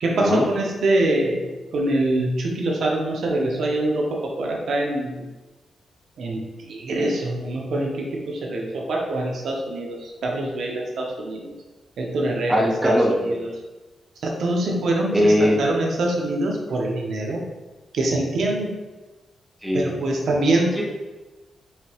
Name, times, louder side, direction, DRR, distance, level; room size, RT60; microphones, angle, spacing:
voice 1, 0.0-5.3 6.2-11.5 12.0-13.5 14.2-17.4 17.9-18.7 19.7-20.7, right 1 dB, 65° right, 0 dB, 0.7 m, -24 dB
voice 2, 12.5-13.5 15.1-15.6 19.6-19.9 20.7-20.8, equal, ahead, -3 dB, 0.7 m, -20 dB
5.0 x 2.7 x 2.9 m, 1.1 s
wide cardioid pair, 140°, 0 cm